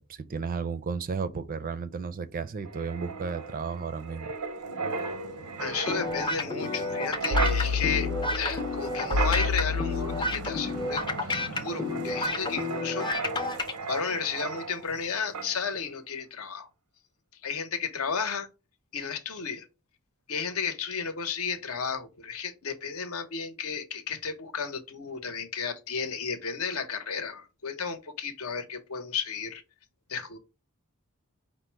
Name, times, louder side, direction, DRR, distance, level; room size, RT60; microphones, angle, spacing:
voice 1, 0.0-4.3, right 5 dB, 40° right, 0.4 m, -33 dB
Wind, 2.6-15.0 15.3-15.6, equal, 90° right, 0.7 m, -33 dB
voice 2, 5.6-8.1 8.3-16.7 17.4-18.5 18.9-19.7 20.3-29.6 30.1-30.4, left 6 dB, 70° left, 0.8 m, -33 dB
sound 1, 5.9-13.7, left 3 dB, 20° left, 0.5 m, -31 dB
5.1 x 2.1 x 4.4 m
head